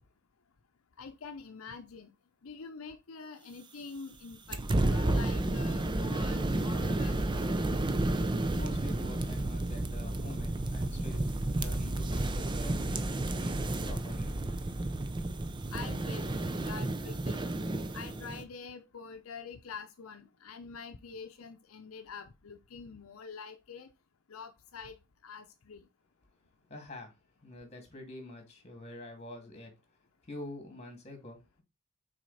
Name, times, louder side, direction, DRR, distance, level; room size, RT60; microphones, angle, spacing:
voice 1, 1.0-2.1 2.4-7.4 15.7-16.3 16.6-17.4 17.9-23.9 24.3-25.0 25.2-25.8, left 5 dB, 85° left, 0.7 m, -46 dB
sound 1, 4.5-18.4, right 2 dB, 20° right, 0.5 m, -31 dB
voice 2, 8.5-11.2 11.6-14.4 26.7-27.1 27.4-29.7 30.3-31.6, left 1 dB, 30° left, 2.3 m, -46 dB
6.3 x 4.2 x 4.2 m
head